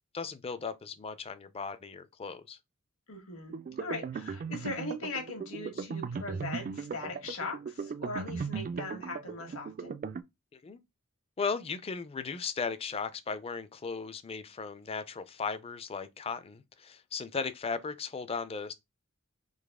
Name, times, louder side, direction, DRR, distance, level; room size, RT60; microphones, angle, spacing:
voice 1, 0.1-2.6 10.5-10.8 11.4-18.7, left 5 dB, 25° left, 0.4 m, -36 dB
voice 2, 3.1-3.5 3.8-9.9, left 2 dB, 70° left, 1.4 m, -39 dB
sound 1, 3.5-10.2, right 5 dB, 40° right, 0.3 m, -38 dB
4.0 x 2.9 x 3.5 m
head